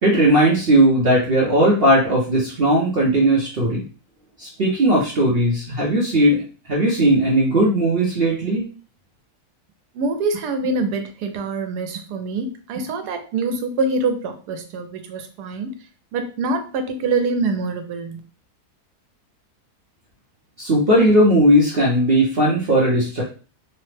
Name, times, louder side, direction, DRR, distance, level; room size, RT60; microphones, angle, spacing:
voice 1, 0.0-3.8 4.4-6.4 6.7-8.7 20.6-23.2, right 1 dB, 55° right, -4 dB, 0.7 m, -17 dB
voice 2, 9.9-15.7 16.1-18.2, right 3 dB, 80° right, 6 dB, 1.1 m, -25 dB
3.2 x 2.0 x 3.2 m, 0.36 s
omnidirectional pair, 1.7 m